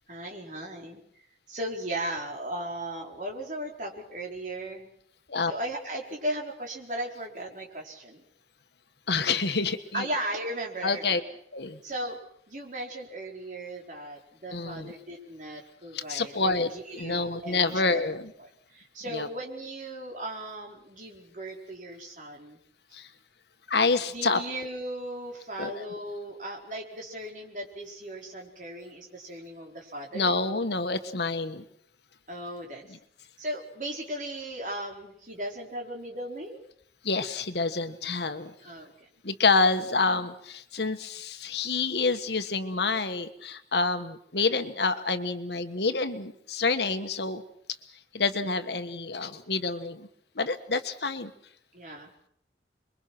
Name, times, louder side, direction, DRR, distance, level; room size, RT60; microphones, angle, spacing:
voice 1, 0.1-1.0 1.5-4.9 5.5-8.2 9.9-11.2 11.8-12.2 12.5-18.0 18.4-22.6 22.9-23.0 24.1-30.4 32.3-32.8 33.4-36.6 38.6-38.9 51.7-52.1, right 1 dB, 45° right, 0 dB, 4.6 m, -37 dB
voice 2, 9.1-10.1 10.8-11.2 11.5-11.8 14.5-14.9 15.9-18.3 19.1-19.3 22.9-23.1 23.7-24.4 25.6-25.7 30.1-31.6 37.0-38.5 39.2-47.4 48.1-50.1 50.3-51.3, left 3 dB, 75° left, 9 dB, 1.5 m, -28 dB
28.0 x 22.5 x 6.1 m, 0.67 s
head